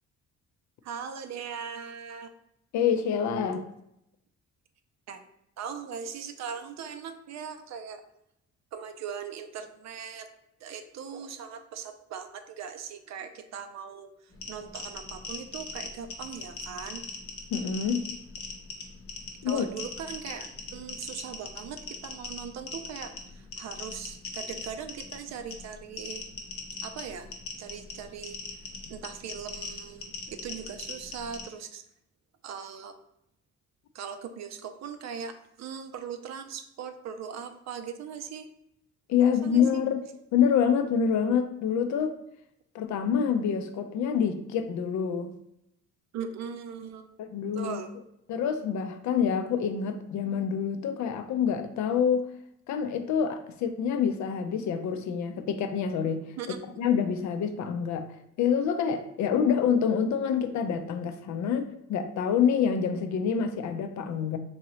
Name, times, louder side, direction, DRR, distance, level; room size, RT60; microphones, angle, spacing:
voice 1, 0.8-2.3 5.1-5.2 5.6-8.0 8.7-10.3 10.6-14.1 14.5-17.0 19.5-26.3 26.8-27.3 27.6-28.4 28.9-31.8 32.4-32.9 33.9-38.5 39.2-39.8 46.1-47.2 47.5-47.9 56.4-56.6, right 7 dB, 65° right, 8 dB, 0.5 m, -39 dB
voice 2, 2.7-3.6 17.5-18.0 19.4-19.7 39.1-40.0 40.3-42.2 42.7-45.3 47.2-47.8 48.3-52.3 52.7-56.2 56.5-58.1 58.4-64.4, left 7 dB, 70° left, 8 dB, 0.5 m, -27 dB
sound 1, 14.3-31.5, left 4 dB, 45° left, 0.8 m, -41 dB
3.8 x 2.8 x 3.0 m, 0.79 s
cardioid pair, 90°, 30 cm